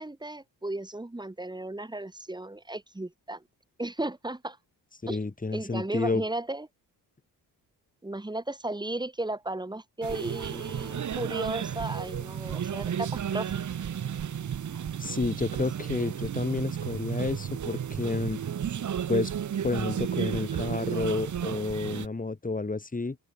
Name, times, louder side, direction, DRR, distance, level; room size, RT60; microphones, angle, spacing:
voice 1, 0.0-3.4 3.8-4.6 5.1-5.2 5.5-6.7 8.0-13.8, right 2 dB, 10° right, 1.5 m, -35 dB
voice 2, 5.0-6.2 15.0-18.4 19.1-19.3 19.6-23.2, left 3 dB, 20° left, 2.0 m, -30 dB
sound 1, 10.0-22.1, right 9 dB, 40° right, 1.0 m, -33 dB
supercardioid pair, 50°, 44 cm